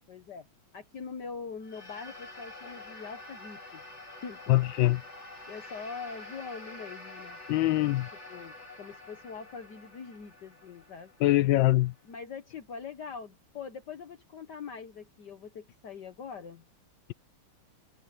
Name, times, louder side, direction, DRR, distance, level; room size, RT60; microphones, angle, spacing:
voice 1, 0.1-0.5 0.7-3.8 4.2-4.5 5.5-7.4 8.3-11.1 12.0-16.7, left 5 dB, 55° left, 1.7 m, -43 dB
sound 1, 1.6-12.2, left 2 dB, 30° left, 3.2 m, -47 dB
voice 2, 4.5-5.0 7.5-8.1 11.2-11.9, left 16 dB, 70° left, 1.3 m, -23 dB
omnidirectional pair, 2.4 m